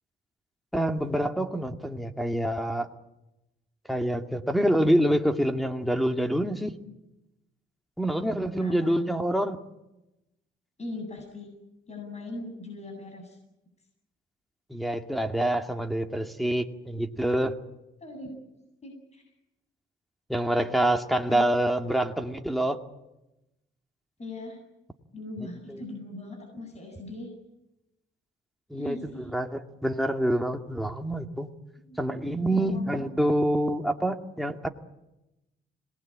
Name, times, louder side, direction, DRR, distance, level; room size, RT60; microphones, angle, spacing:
voice 1, 0.7-2.9 3.9-6.8 8.0-9.6 14.7-17.6 20.3-22.8 25.7-25.8 28.7-29.0 29.3-31.5 32.0-34.7, right 1 dB, ahead, 4 dB, 2.4 m, -26 dB
voice 2, 8.6-9.0 10.8-11.5 11.9-13.4 18.0-18.3 18.8-19.2 21.3-21.4 24.2-24.6 25.1-27.3 28.7-29.3 31.9-33.1, left 2 dB, 35° left, 3 dB, 8.0 m, -40 dB
26.5 x 20.0 x 8.8 m, 0.93 s
cardioid pair, 90°, 20 cm